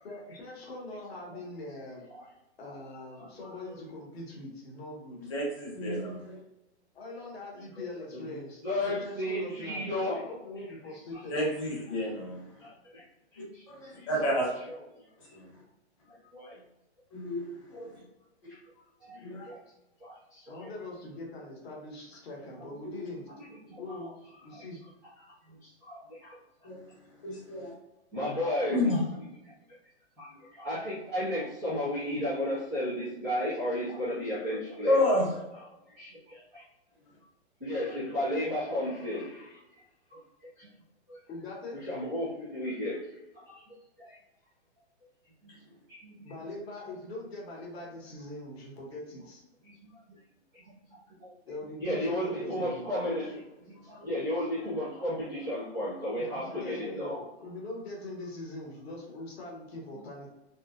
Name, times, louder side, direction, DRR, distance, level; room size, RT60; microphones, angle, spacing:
voice 1, 0.0-2.0 2.6-5.3 6.9-8.6 9.0-11.4 20.5-23.2 23.8-24.1 24.4-24.8 41.3-41.8 46.2-49.4 51.4-52.9 56.5-60.3, left 2 dB, 65° left, -1 dB, 1.1 m, -42 dB
voice 2, 3.2-3.9 7.8-7.9 8.1-10.2 11.4-11.8 12.6-13.0 13.3-14.1 14.6-15.3 16.1-16.6 18.5-18.6 19.0-19.6 20.0-20.7 23.4-24.1 24.5-24.6 25.5-26.4 28.1-28.8 29.4-29.5 30.2-35.0 36.0-36.1 37.6-39.8 40.1-40.7 41.1-41.2 41.8-43.1 43.4-44.2 45.4-45.6 45.9-46.3 49.6-49.7 50.1-50.2 50.5-51.3 51.8-57.3, left 1 dB, ahead, -13 dB, 0.5 m, -34 dB
voice 3, 5.3-6.4 8.8-8.9 11.3-12.4 13.7-14.5 15.3-15.4 17.1-17.4 17.7-17.9 19.2-19.5 22.8-22.9 26.6-26.8 27.2-27.7 28.7-29.0 34.8-35.3, left 1 dB, 30° left, -4 dB, 0.9 m, -29 dB
3.0 x 2.7 x 2.4 m, 0.95 s
hypercardioid pair, 175°, 34 cm